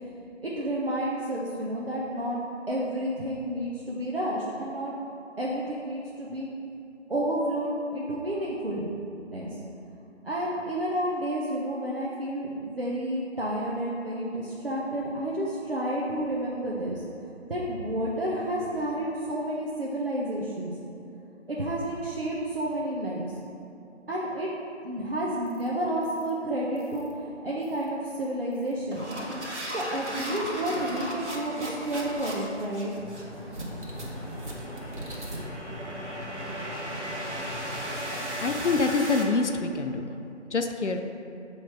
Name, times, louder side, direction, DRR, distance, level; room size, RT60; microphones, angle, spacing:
voice 1, 0.4-2.4 2.7-4.9 5.4-6.5 7.1-8.9 9.3-9.5 10.2-17.0 17.5-20.7 21.5-23.3 24.1-24.5 24.8-27.1 27.4-29.0 29.7-32.9, right 1 dB, 50° right, -6 dB, 0.7 m, -30 dB
sound 1, 25.5-25.7 26.0-26.3 26.8-27.1 27.6-27.9 28.5-39.2, equal, 70° right, 1.4 m, -36 dB
sound 2, 32.9-38.8, left 1 dB, 20° right, 1.3 m, -41 dB
voice 2, 38.4-40.1 40.5-41.0, left 3 dB, 75° left, 6 dB, 0.6 m, -26 dB
7.3 x 3.2 x 4.4 m, 2.6 s
figure-of-eight pair, 175°, 36 cm